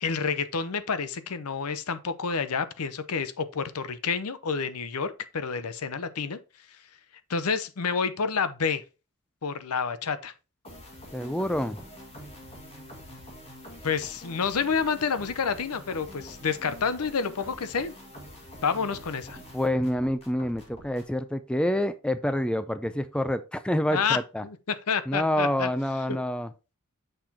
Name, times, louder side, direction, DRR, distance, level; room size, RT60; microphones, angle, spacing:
voice 1, 0.0-6.4 7.3-8.8 9.4-10.3 13.8-17.9 18.6-19.4 23.9-24.2 24.4-25.7 26.1-26.2, left 5 dB, 75° left, 0.7 m, -29 dB
sound 1, 10.6-21.2, equal, 30° left, 1.9 m, -46 dB
voice 2, 11.1-11.9 19.5-24.4 25.1-26.5, left 1 dB, 5° left, 0.4 m, -27 dB
6.7 x 5.9 x 2.8 m
head